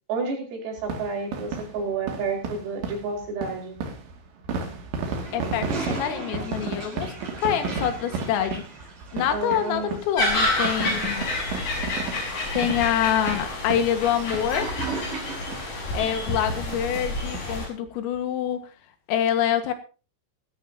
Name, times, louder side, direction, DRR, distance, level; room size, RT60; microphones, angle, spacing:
voice 1, 0.1-3.8 9.3-10.0, right 4 dB, 80° right, 1 dB, 7.9 m, -30 dB
sound 1, 0.8-14.7 14.9-15.1 15.5-15.6 16.0-16.2 16.5-17.5 17.9-18.0 18.2-18.3, right 4 dB, 60° right, 4.5 m, -34 dB
Toilet flush, 5.1-15.7, right 4 dB, 40° right, 6.6 m, -39 dB
voice 2, 5.3-8.6 9.1-11.3 12.5-14.7 15.9-18.7 19.1-19.7, left 10 dB, 80° left, 9 dB, 4.4 m, -26 dB
sound 2, 10.2-17.7, left 1 dB, 40° left, 6.5 m, -29 dB
18.5 x 14.5 x 2.9 m, 0.35 s
omnidirectional pair, 6.0 m